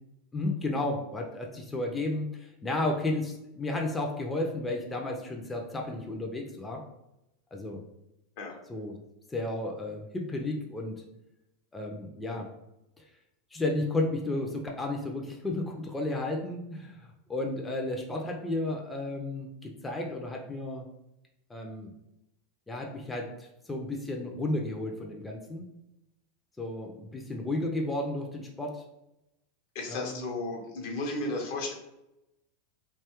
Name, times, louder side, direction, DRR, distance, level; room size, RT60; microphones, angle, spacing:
voice 1, 0.3-6.8 7.5-7.8 8.7-9.0 9.3-11.0 11.7-12.5 13.0-13.1 13.5-20.9 21.5-21.9 22.7-25.7 26.6-28.8 29.9-30.2, left 2 dB, 15° left, 1 dB, 0.4 m, -33 dB
voice 2, 29.7-31.7, left 2 dB, 60° left, 2 dB, 0.7 m, -34 dB
2.9 x 2.3 x 2.9 m, 0.90 s
hypercardioid pair, 95°, 0 cm